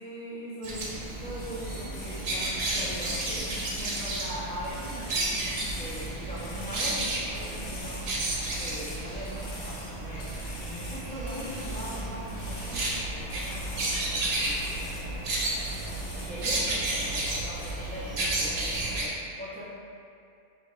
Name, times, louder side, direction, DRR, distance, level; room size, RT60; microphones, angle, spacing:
voice 1, 0.0-3.5 3.7-8.0 8.5-19.6, equal, 10° left, -12 dB, 0.5 m, -41 dB
sound 1, 0.6-19.1, right 2 dB, 80° right, 0.9 m, -32 dB
sound 2, 1.4-2.3 2.6-4.4 4.6-7.1 7.3-9.0 9.2-9.9 10.2-13.0 13.3-14.0 14.3-15.1 15.4-16.6 16.9-17.8, left 2 dB, 90° left, 1.0 m, -44 dB
4.1 x 2.4 x 3.2 m, 2.5 s
omnidirectional pair, 1.0 m